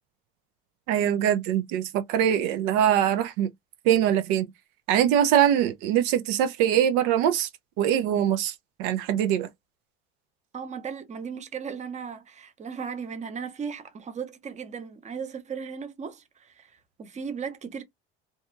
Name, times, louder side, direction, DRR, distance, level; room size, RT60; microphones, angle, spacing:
voice 1, 0.9-3.5 3.8-4.5 4.9-7.5 7.8-9.5, right 10 dB, 75° right, 0.6 m, -23 dB
voice 2, 10.5-17.8, right 6 dB, 25° right, 0.7 m, -36 dB
2.8 x 2.4 x 2.4 m
supercardioid pair, 90°, 30 cm